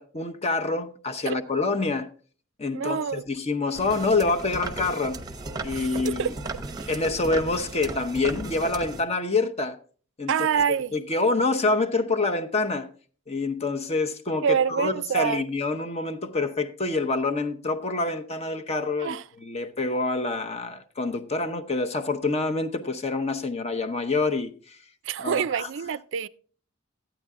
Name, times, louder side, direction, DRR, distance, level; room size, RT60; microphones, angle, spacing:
voice 1, 0.0-2.1 2.6-5.2 5.6-6.3 6.9-9.8 10.2-10.5 10.9-12.9 13.3-24.8 25.2-25.7, left 3 dB, 30° left, 0.8 m, -27 dB
voice 2, 2.7-3.2 5.7-6.3 6.8-6.9 10.3-10.9 14.4-15.4 19.0-19.2 25.1-26.3, right 7 dB, 60° right, 0.4 m, -26 dB
sound 1, 3.7-9.0, right 2 dB, 20° right, 0.8 m, -36 dB
13.5 x 9.1 x 3.6 m
head